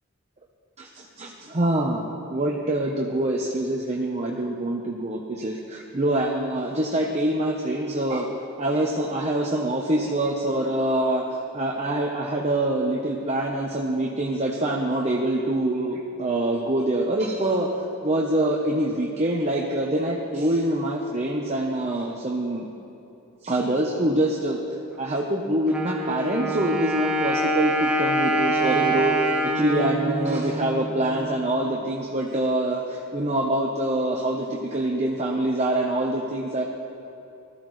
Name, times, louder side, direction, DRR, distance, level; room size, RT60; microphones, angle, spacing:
voice 1, 0.8-2.0 2.3-8.3 8.6-11.2 11.5-17.7 18.0-22.7 23.4-24.6 25.0-36.6, right 1 dB, 35° right, -1 dB, 0.9 m, -25 dB
Wind instrument woodwind instrument, 25.7-31.4, right 1 dB, 5° right, 1.1 m, -25 dB
19.5 x 14.0 x 3.2 m, 2.7 s
head